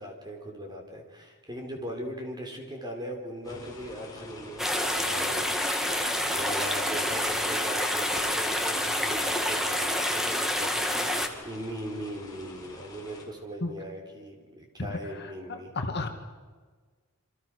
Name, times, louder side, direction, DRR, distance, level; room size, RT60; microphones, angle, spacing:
voice 1, 0.0-15.7, equal, 20° right, 3 dB, 4.7 m, -40 dB
sound 1, 3.4-13.2, left 2 dB, 15° left, 5.5 m, -46 dB
sound 2, 4.6-11.3, left 1 dB, ahead, 2.1 m, -28 dB
voice 2, 15.5-16.1, left 2 dB, 50° left, 5 dB, 2.1 m, -32 dB
28.5 x 25.5 x 6.6 m, 1.5 s
head